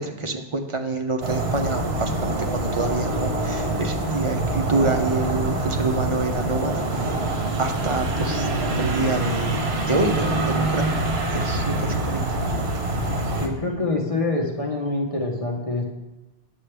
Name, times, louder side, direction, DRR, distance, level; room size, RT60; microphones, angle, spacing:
voice 1, 0.0-7.2 7.6-8.5 8.8-9.6 9.9-12.7 13.1-13.2, right 3 dB, 40° right, 5 dB, 0.5 m, -27 dB
sound 1, 1.2-13.5, right 2 dB, 75° right, 1.2 m, -25 dB
voice 2, 13.4-15.8, left 2 dB, 35° left, -1 dB, 1.0 m, -25 dB
8.5 x 7.3 x 3.3 m, 1.0 s
omnidirectional pair, 1.1 m